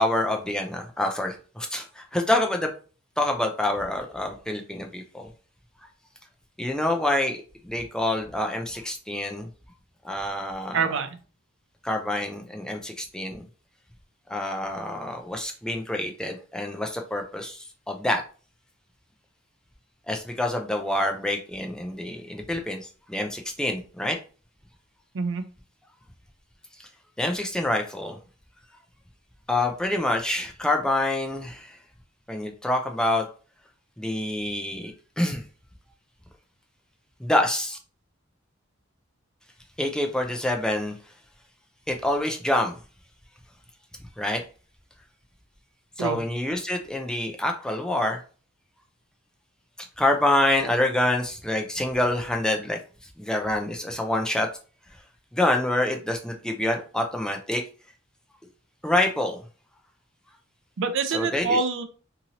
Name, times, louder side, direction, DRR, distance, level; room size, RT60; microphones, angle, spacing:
voice 1, 0.0-2.7 3.2-5.3 6.6-9.5 10.0-10.9 11.8-13.4 14.3-18.2 20.1-24.2 26.8-26.9 27.2-28.2 29.5-31.8 32.3-33.3 34.0-35.4 37.2-37.8 39.8-41.0 41.9-42.8 44.2-44.4 46.0-48.2 50.0-54.5 55.3-57.6 58.8-59.4 61.1-61.6, left 1 dB, 5° left, 2 dB, 0.3 m, -26 dB
voice 2, 10.7-11.1 25.1-25.4 46.0-46.2 60.8-61.8, right 4 dB, 65° right, 9 dB, 0.4 m, -25 dB
2.8 x 2.6 x 2.8 m, 0.38 s
head